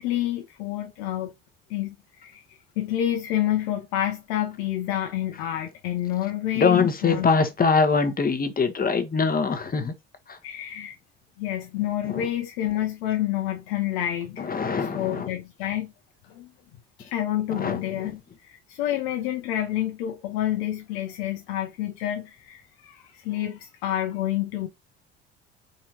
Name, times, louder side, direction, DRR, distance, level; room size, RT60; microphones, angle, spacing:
voice 1, 0.0-1.3 1.7-1.9 2.2-2.4 2.8-7.3 10.4-10.9 11.4-14.6 14.9-15.9 16.3-16.5 17.0-24.7, left 12 dB, 70° left, 0.8 m, -28 dB
voice 2, 6.6-9.9 10.3-10.4 12.1-12.3 14.4-15.3 17.5-17.8, left 5 dB, 30° left, 1.2 m, -23 dB
4.3 x 4.0 x 2.8 m
hypercardioid pair, 60°, 31 cm